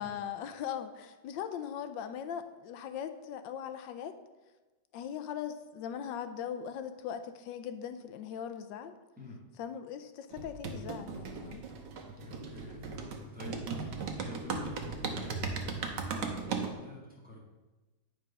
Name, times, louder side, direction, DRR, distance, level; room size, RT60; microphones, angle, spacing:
voice 1, 0.0-4.2 4.9-9.0 9.6-11.6, left 8 dB, 85° left, 9 dB, 1.3 m, -39 dB
sound 1, 10.3-16.7, right 5 dB, 75° right, 1.6 m, -37 dB
voice 2, 12.2-17.4, left 2 dB, 5° right, -3 dB, 1.4 m, -48 dB
9.5 x 4.4 x 5.4 m, 1.2 s
omnidirectional pair, 1.9 m